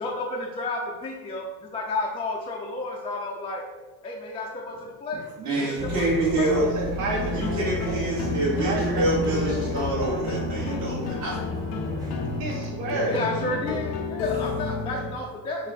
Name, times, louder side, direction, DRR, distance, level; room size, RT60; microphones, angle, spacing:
voice 1, 0.0-3.7 4.0-6.5 12.9-15.7, left 2 dB, 15° left, 0 dB, 0.3 m, -32 dB
voice 2, 5.4-6.7 7.3-11.4, right 2 dB, 40° right, -6 dB, 1.0 m, -26 dB
sound 1, 5.8-12.7, left 1 dB, 10° right, 0.7 m, -33 dB
voice 3, 6.5-8.4 8.6-10.3 12.4-13.2, right 2 dB, 80° right, -2 dB, 1.1 m, -31 dB
sound 2, 7.0-15.1, left 4 dB, 80° left, 0.6 m, -31 dB
3.8 x 2.0 x 4.0 m, 1.2 s
cardioid pair, 110°, 40 cm